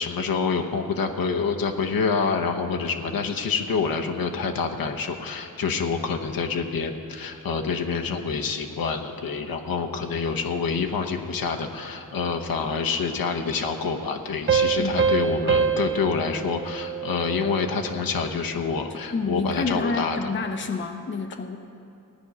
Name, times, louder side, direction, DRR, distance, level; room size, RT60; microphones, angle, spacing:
voice 1, 0.0-20.2, left 5 dB, 75° left, 3 dB, 1.0 m, -27 dB
sound 1, 14.5-17.8, right 6 dB, 35° right, 0.7 m, -25 dB
voice 2, 18.9-21.6, left 3 dB, 30° left, 6 dB, 0.7 m, -29 dB
15.5 x 5.3 x 9.6 m, 2.6 s
wide cardioid pair, 125°, 36 cm